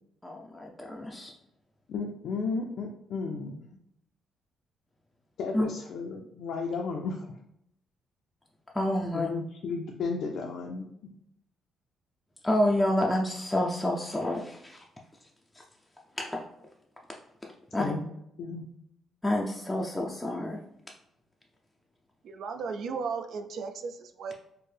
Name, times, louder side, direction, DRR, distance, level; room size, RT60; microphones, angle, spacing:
voice 1, 0.2-1.3 5.5-5.7 8.7-9.3 12.4-14.8 16.2-16.4 17.7-17.8 19.2-20.6, left 1 dB, 10° left, -2 dB, 0.4 m, -28 dB
voice 2, 1.9-3.6 5.4-7.4 9.1-11.1 17.8-18.0 18.4-18.7, left 4 dB, 70° left, 0 dB, 0.4 m, -34 dB
voice 3, 22.2-24.3, right 5 dB, 65° right, 7 dB, 0.3 m, -35 dB
4.4 x 2.1 x 3.2 m, 0.77 s
cardioid pair, 130°, 0 cm